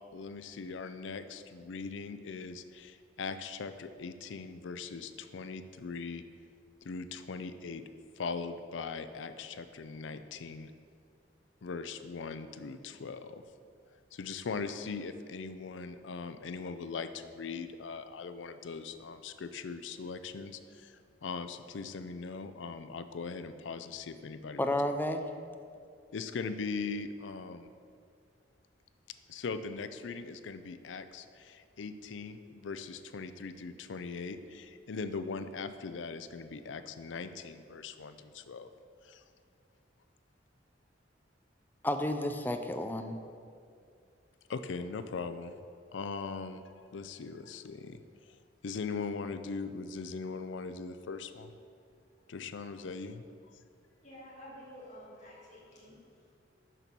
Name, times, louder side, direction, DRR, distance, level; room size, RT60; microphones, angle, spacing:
voice 1, 0.1-6.2 6.8-7.8 8.2-10.7 11.6-13.4 14.1-24.8 26.1-27.7 29.3-38.7 39.0-39.2 44.5-45.6 45.9-48.4 48.6-51.6 52.3-53.2, left 4 dB, 80° left, 11 dB, 0.5 m, -40 dB
voice 2, 24.6-25.2 41.8-43.2, left 1 dB, 10° left, 7 dB, 0.4 m, -31 dB
voice 3, 54.0-56.3, equal, 40° left, -6 dB, 1.7 m, -51 dB
6.8 x 5.9 x 6.1 m, 2.3 s
head